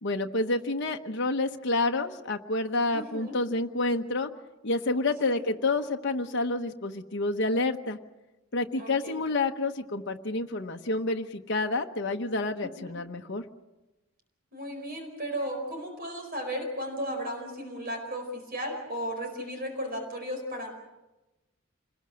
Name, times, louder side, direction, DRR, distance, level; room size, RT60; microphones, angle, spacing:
voice 1, 0.0-4.3 4.6-8.0 8.5-13.4, left 2 dB, 55° left, 3 dB, 1.1 m, -29 dB
voice 2, 2.9-3.4 5.2-5.4 8.8-9.2 12.6-13.0 14.5-20.7, equal, 45° right, 3 dB, 4.7 m, -35 dB
27.5 x 20.5 x 6.3 m, 1.0 s
head